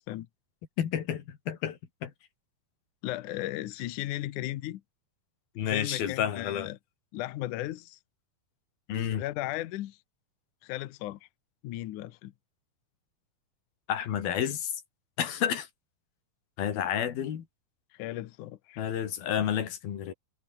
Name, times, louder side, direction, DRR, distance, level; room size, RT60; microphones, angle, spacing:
voice 1, 0.8-2.1 5.6-6.7 8.9-9.2 13.9-14.7 15.2-15.7 16.6-17.4 18.8-20.1, left 9 dB, 85° left, 4.2 m, -30 dB
voice 2, 3.0-4.8 5.6-6.8 7.1-8.0 9.1-10.0 10.6-11.2 11.6-12.3 17.9-18.8, left 15 dB, 70° left, 2.2 m, -36 dB
omnidirectional pair, 4.2 m